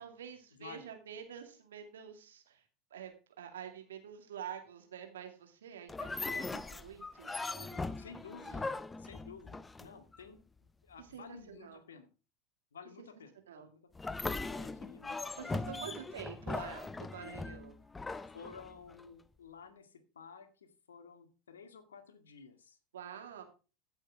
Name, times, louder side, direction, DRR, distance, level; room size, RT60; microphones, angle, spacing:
voice 1, 0.0-2.6 2.9-8.0 8.4-8.7 11.0-11.8 13.5-13.7 15.3-17.8 22.9-23.4, right 8 dB, 80° right, 5 dB, 2.5 m, -47 dB
voice 2, 0.5-0.9 8.0-8.7 9.0-10.4 10.8-12.1 12.7-13.8 14.6-16.0 18.3-22.8, left 5 dB, 85° left, 6 dB, 2.0 m, -53 dB
sound 1, 5.9-10.2 13.9-19.0, left 3 dB, 15° left, 0.7 m, -40 dB
15.5 x 7.2 x 3.6 m, 0.32 s
hypercardioid pair, 80°, 0 cm